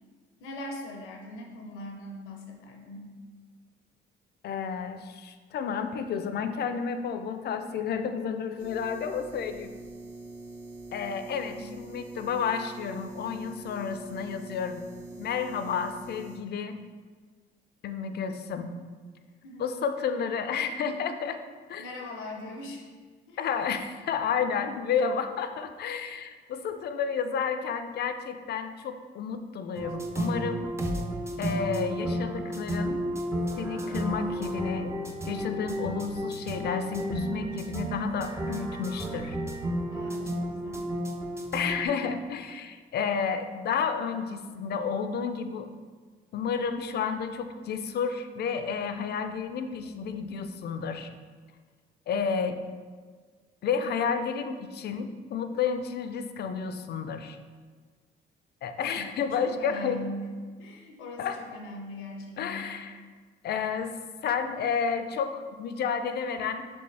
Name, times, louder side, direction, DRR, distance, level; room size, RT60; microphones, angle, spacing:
voice 1, 0.4-3.1 11.3-11.9 19.4-19.7 21.8-22.9 23.3-23.7 39.9-40.9 58.8-60.3 60.6-62.7, left 1 dB, 85° left, 1 dB, 0.7 m, -41 dB
voice 2, 4.4-9.7 10.9-14.9 15.2-16.8 17.8-18.8 19.6-21.4 21.7-21.9 23.4-30.7 31.4-33.0 33.6-34.9 35.3-39.4 41.5-45.7 46.3-51.1 52.1-52.6 53.6-57.4 58.6-60.0 61.2-61.4 62.4-63.0 63.4-63.9 64.2-66.7, left 6 dB, 55° left, 8 dB, 0.4 m, -31 dB
sound 1, 8.6-16.4, right 2 dB, 65° right, 0.7 m, -44 dB
sound 2, 29.8-41.9, right 1 dB, 15° right, 0.4 m, -32 dB
4.3 x 3.1 x 3.3 m, 1.5 s
cardioid pair, 90°, 20 cm